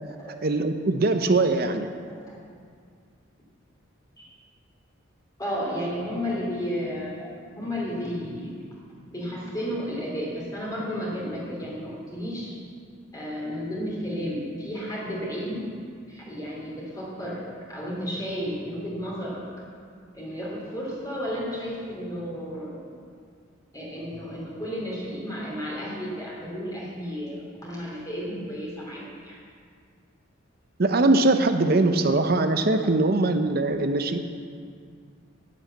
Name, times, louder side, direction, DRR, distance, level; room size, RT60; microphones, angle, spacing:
voice 1, 0.4-1.9 30.8-34.2, right 2 dB, 50° right, 7 dB, 0.7 m, -21 dB
voice 2, 2.1-2.4 4.2-4.3 5.4-8.6 9.1-12.5 13.1-15.7 16.1-19.4 20.1-22.8 23.7-29.4, equal, 20° left, -5 dB, 2.7 m, -33 dB
9.8 x 9.5 x 7.9 m, 2.1 s
head